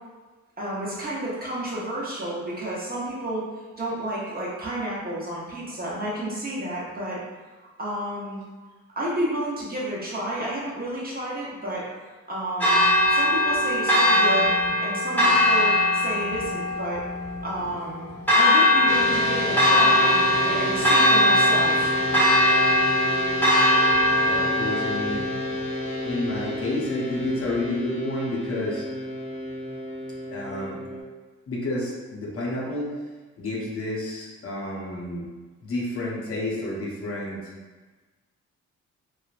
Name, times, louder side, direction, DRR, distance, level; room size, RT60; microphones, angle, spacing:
voice 1, 0.6-3.5 3.8-7.2 7.8-8.4 9.0-11.8 12.3-14.5 14.8-17.0 17.4-20.1 20.4-21.9, right 1 dB, 30° right, -6 dB, 0.8 m, -31 dB
Church bell, 12.6-26.6, left 1 dB, 5° left, 0.9 m, -21 dB
sound 1, 18.9-31.0, equal, 80° left, 1.0 m, -31 dB
voice 2, 24.2-25.3 26.0-28.8 30.3-30.8 31.5-33.0 33.4-35.3 35.6-37.5, left 1 dB, 50° left, -4 dB, 0.7 m, -30 dB
3.1 x 2.1 x 2.4 m, 1.3 s
cardioid pair, 95°, 29 cm